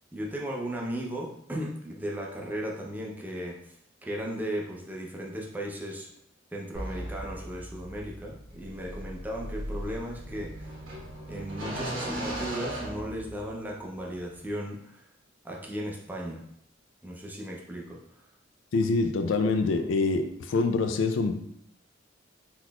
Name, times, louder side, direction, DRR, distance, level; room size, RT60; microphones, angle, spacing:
voice 1, 0.1-6.1 6.5-10.7 11.3-15.0 15.4-16.4 17.0-18.3, equal, 10° right, -2 dB, 0.5 m, -36 dB
sound 1, 6.7-13.7, right 1 dB, 80° right, 1.2 m, -37 dB
voice 2, 18.7-21.3, left 3 dB, 80° left, 7 dB, 0.4 m, -25 dB
3.9 x 2.9 x 2.3 m, 0.72 s
head